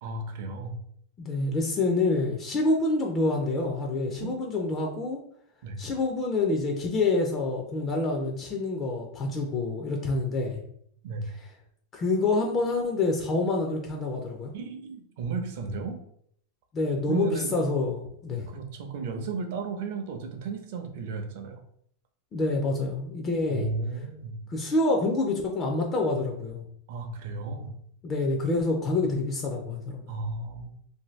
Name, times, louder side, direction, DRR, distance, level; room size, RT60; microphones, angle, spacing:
voice 1, 0.0-0.8 4.2-4.3 5.6-5.8 11.0-11.2 14.5-16.0 17.1-17.5 18.5-21.6 23.5-24.4 26.9-27.8 30.1-30.8, right 4 dB, 55° right, 5 dB, 0.6 m, -34 dB
voice 2, 1.2-5.2 5.8-10.6 11.4-11.5 11.9-14.5 16.7-18.5 22.3-23.7 24.5-26.6 28.0-30.1, left 2 dB, 20° left, 1 dB, 0.4 m, -27 dB
2.6 x 2.6 x 3.1 m, 0.67 s
supercardioid pair, 170°, 0 cm